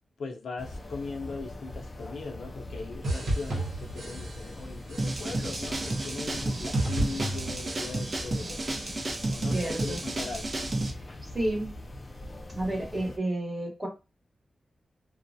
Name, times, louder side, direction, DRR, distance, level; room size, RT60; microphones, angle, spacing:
voice 1, 0.2-8.7 9.3-10.6, left 4 dB, 85° left, 0.6 m, -39 dB
sound 1, 0.6-13.2, left 1 dB, 35° left, 0.3 m, -42 dB
sound 2, 3.0-4.6 4.9-5.4 5.8-6.4 6.7-8.3 8.6-9.1 9.5-10.1, right 1 dB, 80° right, 0.8 m, -34 dB
sound 3, 5.0-10.9, right 2 dB, 40° right, 0.6 m, -32 dB
voice 2, 9.5-10.0 11.0-11.7 12.5-13.9, right 1 dB, 20° right, 1.1 m, -31 dB
2.3 x 2.0 x 2.6 m
wide cardioid pair, 105°, 0 cm